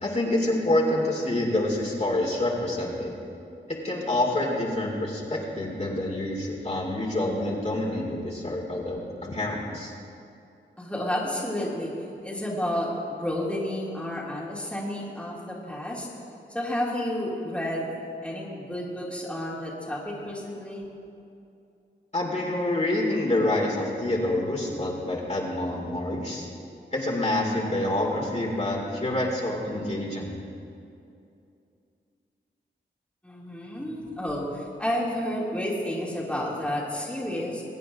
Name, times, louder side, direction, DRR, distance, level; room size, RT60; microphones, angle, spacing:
voice 1, 0.0-3.1 3.8-9.9 22.1-26.5 26.9-30.4, left 1 dB, 35° left, -4 dB, 2.3 m, -27 dB
voice 2, 10.8-11.9 12.2-16.1 16.5-17.9 18.2-20.9 33.2-37.6, left 1 dB, 5° left, -5 dB, 2.3 m, -31 dB
22.5 x 9.0 x 2.6 m, 2.6 s
cardioid pair, 70°, 19 cm